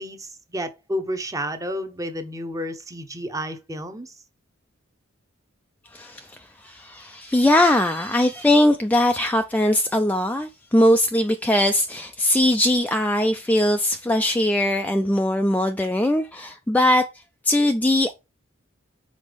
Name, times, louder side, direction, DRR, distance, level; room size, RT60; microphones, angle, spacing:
voice 1, 0.0-4.1, equal, 15° right, 0.8 m, -31 dB
voice 2, 5.9-18.1, left 1 dB, 5° left, 0.3 m, -21 dB
5.3 x 4.2 x 5.1 m
head